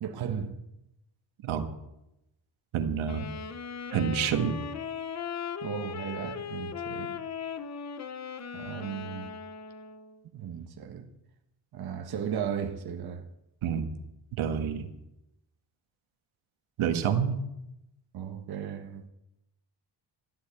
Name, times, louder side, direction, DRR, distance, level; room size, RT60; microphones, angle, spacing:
voice 1, 0.0-0.6 5.6-7.2 8.5-9.3 10.3-11.1 11.7-13.3 18.1-19.1, right 8 dB, 50° right, 1.4 m, -36 dB
voice 2, 2.7-3.3 3.9-4.6 13.6-13.9 14.4-14.9 16.8-17.4, right 7 dB, 85° right, 1.8 m, -28 dB
Wind instrument woodwind instrument, 3.0-10.2, left 6 dB, 35° left, 0.8 m, -38 dB
13.0 x 12.0 x 8.3 m
wide cardioid pair, 175°, 47 cm